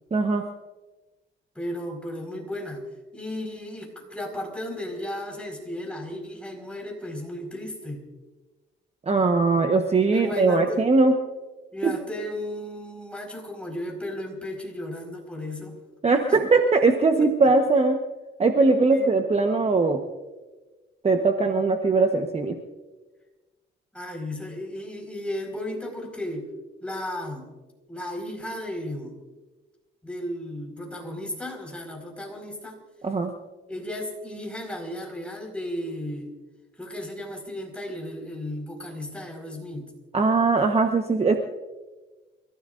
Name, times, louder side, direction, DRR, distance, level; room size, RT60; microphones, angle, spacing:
voice 1, 0.1-0.4 9.1-11.1 11.8-11.9 16.0-18.0 18.4-20.0 21.0-22.6 33.0-33.3 40.1-41.4, right 3 dB, 30° right, 5 dB, 1.1 m, -20 dB
voice 2, 1.5-8.0 10.1-10.8 11.7-15.7 16.3-16.5 18.9-19.1 23.9-26.5 26.8-27.5 27.9-29.2 30.0-32.8 33.7-36.3 36.8-39.9, left 1 dB, 5° left, 1 dB, 4.7 m, -34 dB
28.5 x 15.5 x 2.6 m, 1.2 s
cardioid pair, 100°, 21 cm